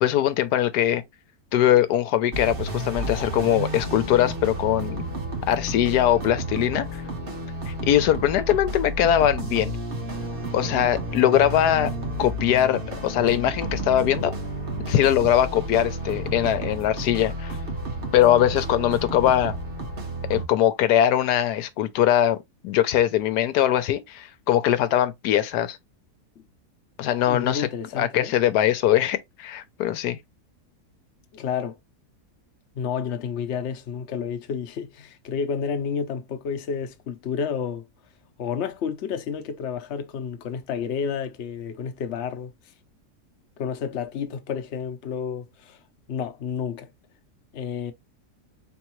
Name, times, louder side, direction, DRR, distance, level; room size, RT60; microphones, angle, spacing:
voice 1, 0.0-1.0 1.5-5.1 5.5-7.0 7.7-9.7 10.5-11.9 12.2-14.3 14.9-17.6 18.1-19.6 20.3-22.4 22.6-25.8 27.0-27.7 28.0-30.2, left 11 dB, 85° left, 1.2 m, -21 dB
sound 1, 2.3-20.5, right 1 dB, 40° right, 1.2 m, -31 dB
voice 2, 27.3-28.3 31.3-31.8 32.7-37.8 38.4-42.5 43.6-45.8 46.1-46.9 47.5-47.9, left 7 dB, 55° left, 0.9 m, -30 dB
4.5 x 3.8 x 3.0 m
omnidirectional pair, 1.7 m